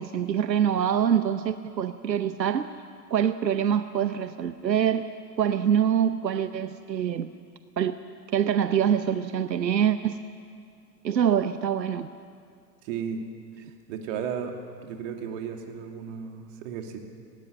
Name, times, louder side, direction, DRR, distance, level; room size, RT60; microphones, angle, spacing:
voice 1, 0.0-2.7 3.1-5.1 5.4-7.3 7.8-7.9 8.3-10.2 11.0-12.1, right 9 dB, 90° right, 11 dB, 0.8 m, -25 dB
voice 2, 12.8-13.3 13.6-14.5 14.8-17.0, right 7 dB, 50° right, 3 dB, 2.9 m, -34 dB
19.0 x 18.0 x 8.7 m, 2.5 s
hypercardioid pair, 105°, 49 cm